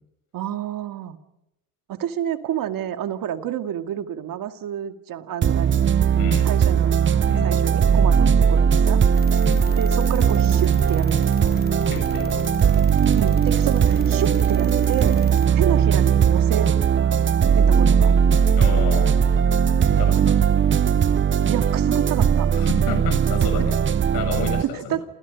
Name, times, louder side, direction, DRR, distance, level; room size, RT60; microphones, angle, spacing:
voice 1, 0.3-1.2 1.9-5.8 6.4-6.9 7.4-9.0 9.8-11.3 13.1-15.3 15.5-16.7 17.6-18.2 21.5-22.5 23.4-23.5 24.6-25.1, right 10 dB, 65° right, 8 dB, 2.3 m, -29 dB
sound 1, 5.4-24.6, right 7 dB, 35° right, 0.9 m, -19 dB
voice 2, 6.1-6.5 7.3-7.6 9.4-9.7 11.9-12.5 18.5-19.2 19.9-20.5 22.5-23.8 24.1-25.0, left 6 dB, 90° left, 7 dB, 6.9 m, -31 dB
sound 2, 9.1-15.5, left 3 dB, 25° left, 3.5 m, -37 dB
29.0 x 28.5 x 5.3 m, 0.85 s
supercardioid pair, 85°, 36 cm